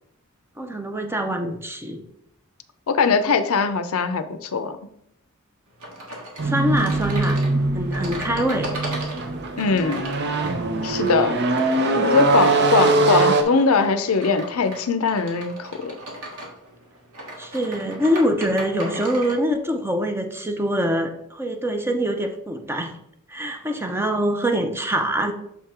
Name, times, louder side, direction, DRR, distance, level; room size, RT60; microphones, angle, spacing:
voice 1, 0.6-2.0 6.4-7.4 7.7-8.7 11.9-12.2 17.4-23.0 23.3-25.3, equal, 10° right, 6 dB, 0.6 m, -24 dB
voice 2, 2.9-4.8 9.6-10.0 10.8-11.4 12.0-16.0, left 4 dB, 80° left, 10 dB, 0.6 m, -21 dB
sound 1, 5.8-19.4, right 1 dB, 85° right, 1.7 m, -37 dB
sound 2, 6.4-13.4, right 3 dB, 50° right, 0.7 m, -22 dB
7.1 x 3.7 x 4.3 m, 0.74 s
head